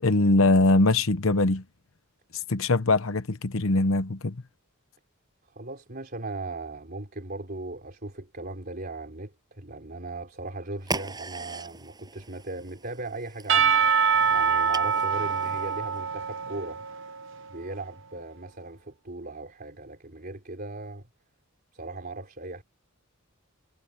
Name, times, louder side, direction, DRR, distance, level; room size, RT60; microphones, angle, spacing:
voice 1, 0.0-1.6 2.3-4.4, left 2 dB, 70° left, 1.0 m, -22 dB
voice 2, 5.5-13.9 14.3-16.8 17.5-21.1 21.7-22.6, right 2 dB, 45° right, 3.6 m, -38 dB
sound 1, 10.8-16.0, right 3 dB, 20° right, 7.3 m, -40 dB
Percussion / Church bell, 13.5-17.4, right 6 dB, 60° right, 0.8 m, -24 dB
head